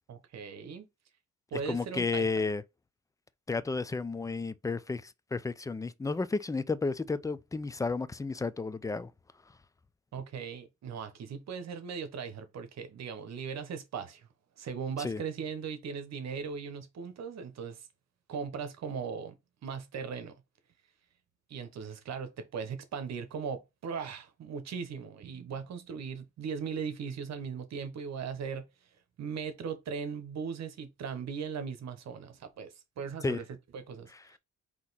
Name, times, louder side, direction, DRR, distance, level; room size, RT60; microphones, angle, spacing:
voice 1, 0.1-0.9 1.5-2.3 10.1-14.3 14.6-17.9 18.3-19.3 19.6-20.3 21.5-28.7 29.2-33.4 33.7-34.4, right 6 dB, 60° right, 1.1 m, -38 dB
voice 2, 1.5-2.6 3.5-9.1 15.0-15.2 33.2-33.4 34.1-34.2, left 4 dB, 10° left, 0.4 m, -32 dB
4.1 x 3.0 x 4.1 m
cardioid pair, 90°, 30 cm